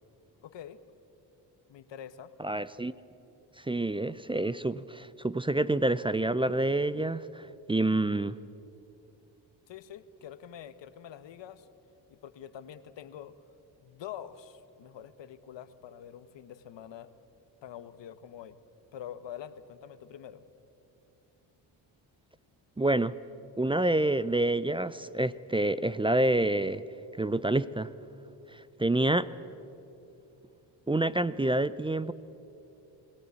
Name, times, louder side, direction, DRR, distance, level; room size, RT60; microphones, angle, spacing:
voice 1, 0.4-0.8 1.7-2.3 9.7-11.7 12.1-13.4 13.8-17.1 17.6-18.6 18.9-20.4, left 9 dB, 65° left, 13 dB, 1.2 m, -45 dB
voice 2, 2.4-2.9 3.6-8.4 22.8-23.2 23.6-26.8 27.2-27.9 28.5-29.3 30.9-32.1, right 2 dB, 10° right, 17 dB, 0.5 m, -28 dB
22.5 x 17.0 x 8.3 m, 2.9 s
supercardioid pair, 65°, 47 cm